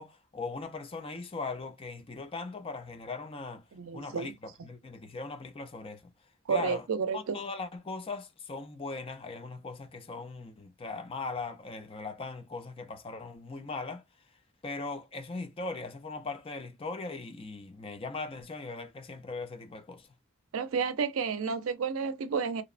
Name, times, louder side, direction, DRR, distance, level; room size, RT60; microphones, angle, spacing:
voice 1, 0.0-3.6 3.9-6.1 6.5-6.9 7.1-14.0 14.6-20.1, left 3 dB, 25° left, 0.4 m, -39 dB
voice 2, 3.7-4.3 6.5-7.4 20.5-22.6, right 5 dB, 85° right, 0.4 m, -31 dB
2.8 x 2.0 x 2.4 m
head